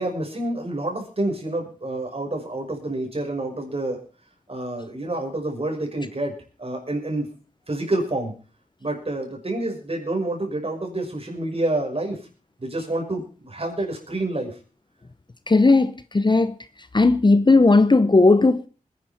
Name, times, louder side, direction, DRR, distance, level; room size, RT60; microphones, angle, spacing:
voice 1, 0.0-4.0 4.5-7.3 7.7-8.3 8.8-12.2 12.6-14.6, right 2 dB, 45° right, 5.8 m, -28 dB
voice 2, 15.5-16.5 16.9-18.7, left 3 dB, 30° left, 0.8 m, -16 dB
21.5 x 10.5 x 4.3 m
cardioid pair, 55°, 14 cm